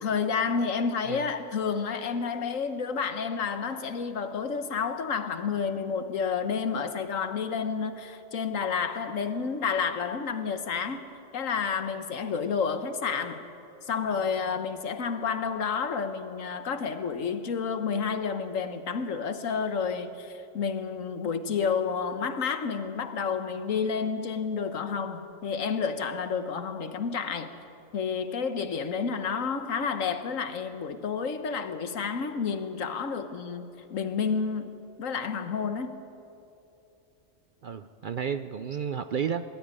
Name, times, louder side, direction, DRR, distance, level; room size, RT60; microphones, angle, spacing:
voice 1, 0.0-11.0 11.3-13.4 13.9-27.5 27.9-36.0, left 6 dB, 85° left, 1.5 m, -30 dB
voice 2, 37.6-39.4, right 7 dB, 55° right, 0.6 m, -32 dB
20.5 x 13.0 x 9.8 m
omnidirectional pair, 1.3 m